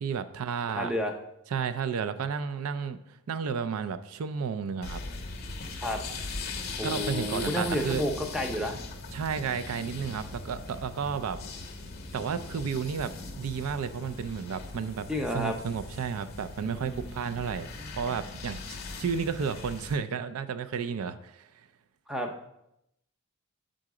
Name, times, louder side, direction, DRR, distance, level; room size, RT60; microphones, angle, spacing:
voice 1, 0.0-0.9 1.5-3.0 3.3-5.0 6.8-8.0 9.1-11.4 12.1-15.1 15.3-17.7 18.0-21.5, right 6 dB, 80° right, 11 dB, 0.4 m, -32 dB
voice 2, 0.8-1.1 5.8-6.0 6.8-8.7 15.1-15.6 16.6-17.1 17.7-17.8 22.1-22.5, equal, 5° right, 3 dB, 0.6 m, -31 dB
sound 1, 4.8-20.0, left 3 dB, 45° left, 0.7 m, -40 dB
7.4 x 3.9 x 4.8 m, 0.82 s
head